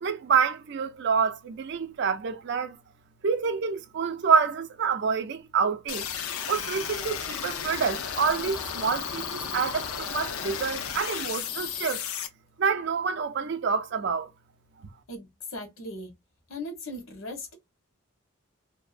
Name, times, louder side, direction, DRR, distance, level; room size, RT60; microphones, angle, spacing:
voice 1, 0.0-2.8 3.2-6.1 6.5-12.0 12.6-14.3 14.8-14.9, right 6 dB, 55° right, 0.4 m, -27 dB
sound 1, 5.9-12.3, left 8 dB, 90° left, 0.5 m, -34 dB
voice 2, 15.1-16.1 16.5-17.5, left 1 dB, 75° left, 1.0 m, -38 dB
2.6 x 2.0 x 2.4 m
head